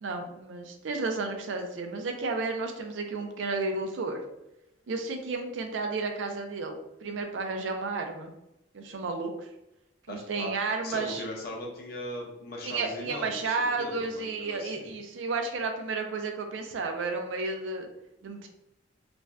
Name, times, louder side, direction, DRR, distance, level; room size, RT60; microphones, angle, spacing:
voice 1, 0.0-4.2 4.9-8.3 8.7-9.5 10.1-11.2 12.6-17.9 18.2-18.5, right 3 dB, 70° right, 5 dB, 0.4 m, -32 dB
voice 2, 10.1-10.5 10.8-14.9, left 1 dB, 50° left, 0 dB, 0.6 m, -39 dB
2.5 x 2.2 x 3.3 m, 0.89 s
head